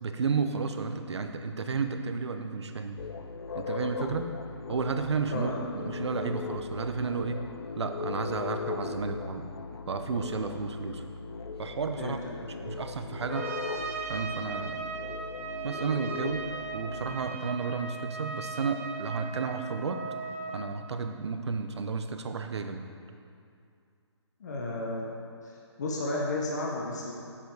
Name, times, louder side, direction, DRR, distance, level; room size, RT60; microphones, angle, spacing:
voice 1, 0.0-3.0 3.5-4.3 4.7-7.4 7.7-9.5 9.9-11.0 11.6-12.2 12.6-13.5 14.1-14.8 15.6-16.5 16.7-20.0 20.5-22.9, right 5 dB, 65° right, 7 dB, 0.8 m, -32 dB
sound 1, 3.0-17.2, left 5 dB, 60° left, 0.5 m, -39 dB
Trumpet, 13.3-20.6, right 5 dB, 30° right, 0.6 m, -38 dB
voice 2, 24.4-25.1 25.4-27.1, left 2 dB, 40° left, -2 dB, 1.0 m, -33 dB
7.5 x 7.0 x 4.7 m, 2.4 s
hypercardioid pair, 170°, 15 cm